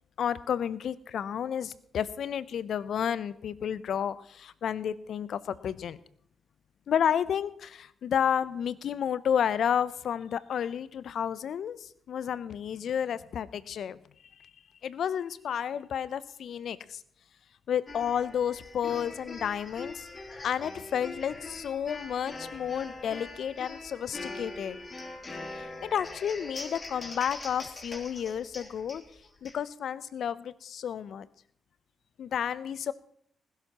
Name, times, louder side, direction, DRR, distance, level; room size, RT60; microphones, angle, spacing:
voice 1, 0.2-6.0 6.9-14.0 14.4-14.5 14.8-17.0 17.7-20.0 20.4-24.8 25.5-29.0 29.4-31.3 32.2-32.9, left 8 dB, 65° left, 17 dB, 0.6 m, -31 dB
sound 1, 17.9-29.6, left 2 dB, 40° left, 3.2 m, -42 dB
20.0 x 16.0 x 3.0 m, 0.65 s
hypercardioid pair, 40°, 0 cm